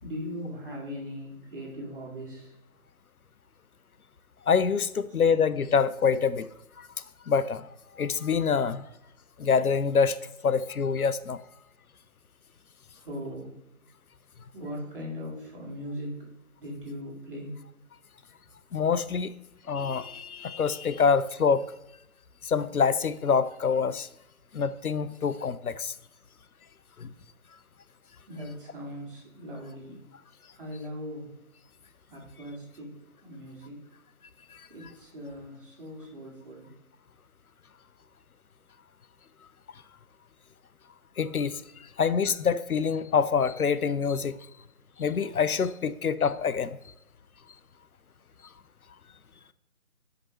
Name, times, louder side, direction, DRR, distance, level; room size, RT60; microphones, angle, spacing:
voice 1, 0.0-2.5 12.9-13.6 14.5-16.3 16.6-17.5 18.4-18.5 28.3-30.0 30.5-31.3 32.1-32.9 33.2-33.8 34.7-36.7, equal, 40° right, -3 dB, 2.4 m, -39 dB
voice 2, 4.5-6.5 6.8-6.9 7.3-7.7 7.9-8.9 9.4-10.2 10.4-11.4 18.7-19.3 19.7-21.7 22.4-24.1 24.5-25.9 27.0-27.1 34.5-34.6 41.2-41.6 42.0-44.4 45.0-46.8, left 6 dB, 85° left, 14 dB, 0.6 m, -25 dB
9.9 x 5.2 x 3.0 m, 0.89 s
figure-of-eight pair, 155°, 43 cm